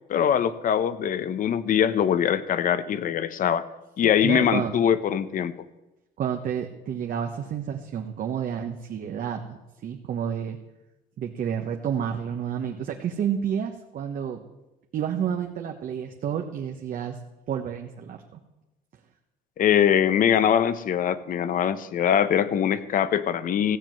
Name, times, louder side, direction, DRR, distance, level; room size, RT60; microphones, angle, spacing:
voice 1, 0.1-3.6 4.0-5.5 19.6-23.8, left 9 dB, 55° left, 15 dB, 0.9 m, -22 dB
voice 2, 4.0-4.7 6.2-10.6 11.2-14.4 14.9-17.2 17.5-18.4, right 8 dB, 55° right, 3 dB, 1.2 m, -30 dB
15.0 x 7.5 x 7.6 m, 1.0 s
cardioid pair, 110°, 17 cm